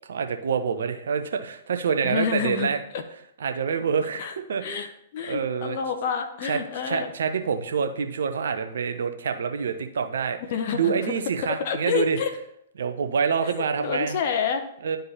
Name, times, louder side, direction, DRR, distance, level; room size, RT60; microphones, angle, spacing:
voice 1, 0.1-2.8 3.4-4.9 5.2-5.8 6.4-6.6 6.9-10.4 10.7-12.2 12.8-14.2 14.8-15.0, right 6 dB, 65° right, 7 dB, 0.7 m, -26 dB
voice 2, 2.0-2.7 2.9-3.0 4.2-4.3 4.6-4.9 5.1-7.1 10.5-10.9 11.5-12.3 13.4-13.5 13.8-14.6, left 6 dB, 50° left, 6 dB, 0.7 m, -28 dB
11.5 x 3.8 x 2.8 m, 0.73 s
figure-of-eight pair, 110°, 0 cm